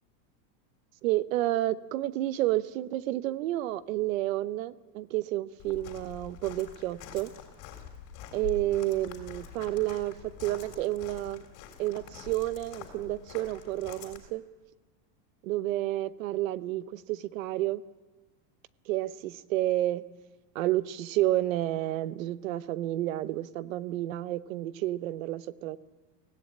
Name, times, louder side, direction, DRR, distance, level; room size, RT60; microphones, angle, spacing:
voice 1, 1.0-7.3 8.3-11.4 11.8-14.4 15.4-17.8 18.9-20.0 20.5-25.8, right 15 dB, 55° right, 16 dB, 0.8 m, -30 dB
Walk footsteps, 5.6-14.2, left 8 dB, 35° left, 3.3 m, -46 dB
24.0 x 17.0 x 8.8 m, 1.2 s
supercardioid pair, 180°, 49 cm